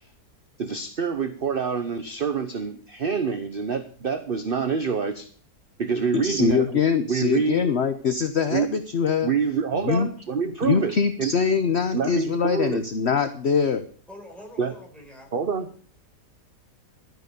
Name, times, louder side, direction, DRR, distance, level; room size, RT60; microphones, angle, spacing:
voice 1, 0.6-5.3 5.8-6.7 7.1-7.7 8.5-8.7 9.2-10.9 11.2-11.3 11.9-12.8 14.6-14.7 15.3-15.7, right 6 dB, 40° right, 9 dB, 1.0 m, -26 dB
voice 2, 6.1-9.3 9.7-10.1 10.6-13.8, left 6 dB, 45° left, 10 dB, 1.0 m, -23 dB
voice 3, 14.1-15.6, left 1 dB, ahead, 0 dB, 4.6 m, -45 dB
13.0 x 9.2 x 6.9 m, 0.43 s
omnidirectional pair, 1.8 m